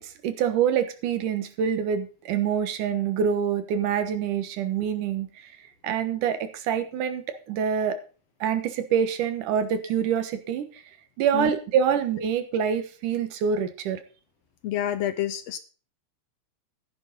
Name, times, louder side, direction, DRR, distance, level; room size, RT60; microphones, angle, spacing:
voice 1, 0.0-5.5 5.8-8.0 8.4-10.8 11.2-14.0, right 8 dB, 85° right, 9 dB, 2.8 m, -26 dB
voice 2, 14.6-15.6, left 11 dB, 75° left, 12 dB, 1.6 m, -28 dB
14.0 x 11.0 x 4.0 m, 0.37 s
omnidirectional pair, 3.5 m